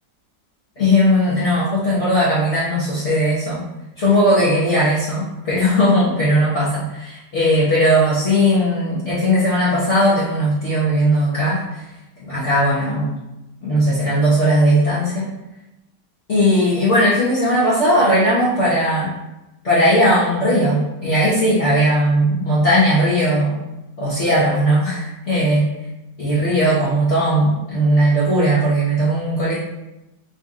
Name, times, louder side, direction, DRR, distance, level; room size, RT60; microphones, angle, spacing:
voice 1, 0.8-3.6 4.0-11.6 12.2-13.1 13.6-15.3 16.3-19.1 19.6-23.6 24.0-25.7 26.2-29.6, equal, 50° left, -10 dB, 1.0 m, -17 dB
4.0 x 2.5 x 3.6 m, 0.97 s
omnidirectional pair, 1.9 m